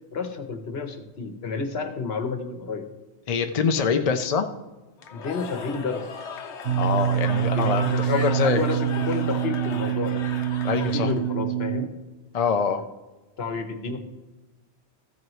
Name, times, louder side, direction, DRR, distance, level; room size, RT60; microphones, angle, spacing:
voice 1, 0.1-2.9 5.1-6.0 7.5-10.2 10.7-11.9 13.4-14.0, left 4 dB, 65° left, 7 dB, 1.3 m, -30 dB
voice 2, 3.3-4.5 6.8-8.6 10.6-11.1 12.3-12.8, left 6 dB, 45° left, 7 dB, 0.6 m, -24 dB
Cheering / Crowd, 5.0-11.3, left 6 dB, 85° left, 1.1 m, -38 dB
sound 1, 6.6-11.9, right 10 dB, 75° right, 0.9 m, -25 dB
14.5 x 7.7 x 3.1 m, 1.2 s
omnidirectional pair, 1.1 m